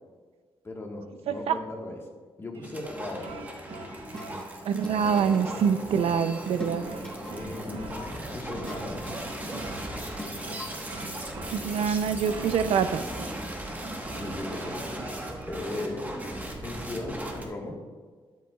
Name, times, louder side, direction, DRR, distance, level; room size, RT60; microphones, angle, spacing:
voice 1, 0.6-2.0 2.4-3.3 7.3-9.0 14.1-14.8 15.5-17.7, left 2 dB, 25° left, 1 dB, 1.4 m, -37 dB
sound 1, 2.5-15.6, right 3 dB, 65° right, 0.9 m, -45 dB
sound 2, 2.6-17.4, right 1 dB, 15° right, 1.2 m, -37 dB
sound 3, 3.7-11.1, left 1 dB, 5° left, 1.2 m, -43 dB
voice 2, 4.6-6.8 11.5-13.0, right 7 dB, 85° right, 11 dB, 0.5 m, -25 dB
13.0 x 10.5 x 2.3 m, 1.5 s
wide cardioid pair, 155°, 10 cm